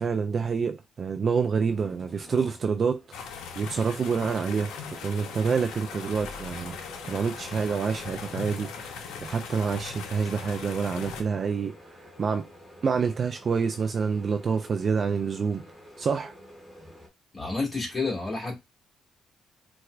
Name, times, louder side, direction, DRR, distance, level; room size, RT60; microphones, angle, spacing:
voice 1, 0.0-3.3 3.6-6.8 7.0-8.7 9.2-11.7 12.2-12.4 12.8-15.6 16.0-16.3, right 5 dB, 45° right, 0.3 m, -27 dB
sound 1, 1.7-17.1, left 1 dB, ahead, 1.4 m, -49 dB
sound 2, 3.1-11.2, left 6 dB, 90° left, 0.6 m, -39 dB
voice 2, 17.3-18.6, left 3 dB, 25° left, 1.8 m, -30 dB
4.2 x 2.3 x 2.4 m
cardioid pair, 90°, 0 cm